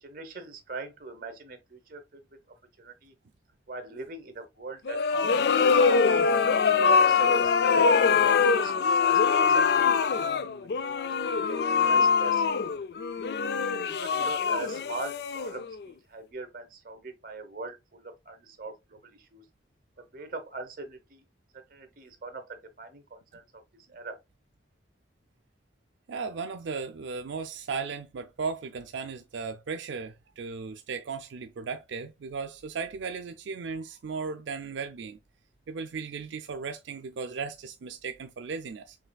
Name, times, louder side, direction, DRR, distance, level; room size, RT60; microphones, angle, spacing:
voice 1, 0.0-2.4 2.8-3.1 3.7-6.2 6.9-10.1 10.5-10.9 11.5-12.5 13.9-19.4 20.0-21.2 21.5-23.4 23.7-24.2, right 3 dB, 50° right, 0.9 m, -41 dB
sound 1, 4.9-15.8, left 5 dB, 55° left, 0.3 m, -23 dB
voice 2, 26.1-35.2 35.7-39.0, right 5 dB, 80° right, 0.4 m, -36 dB
5.6 x 3.2 x 2.2 m
head